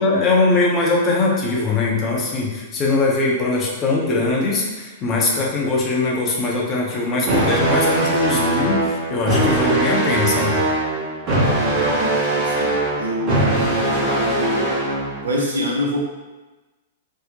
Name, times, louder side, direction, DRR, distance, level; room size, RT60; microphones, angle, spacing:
voice 1, 0.0-10.6, left 3 dB, 25° left, -3 dB, 0.6 m, -21 dB
sound 1, 7.2-15.2, right 2 dB, 30° right, 0.9 m, -21 dB
voice 2, 11.6-14.8 15.2-16.0, equal, 65° right, -2 dB, 0.6 m, -25 dB
2.7 x 2.0 x 2.7 m, 1.2 s
figure-of-eight pair, 100°, 0 cm